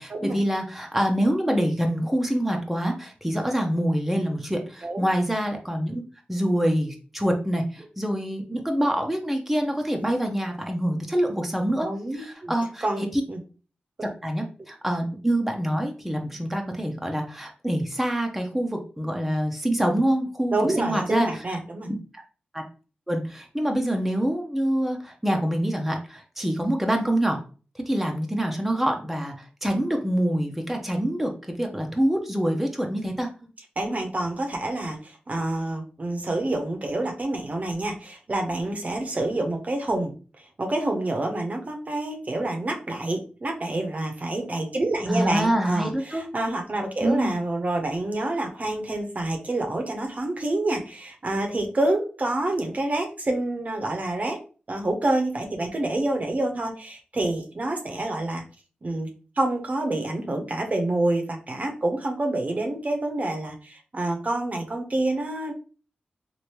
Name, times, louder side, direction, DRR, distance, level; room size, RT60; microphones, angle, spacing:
voice 1, 0.0-6.0 6.3-11.9 12.1-13.2 14.2-21.4 21.9-22.0 22.5-22.6 23.1-27.4 27.7-33.3 45.1-46.3 47.0-47.3, right 1 dB, 5° right, 2 dB, 0.7 m, -26 dB
voice 2, 11.8-12.5 12.8-13.4 20.5-21.9 33.8-40.1 40.6-54.4 54.7-58.4 58.8-59.1 59.4-65.5, right 2 dB, 45° right, 3 dB, 0.7 m, -27 dB
3.2 x 2.5 x 2.9 m, 0.37 s
cardioid pair, 45°, 3 cm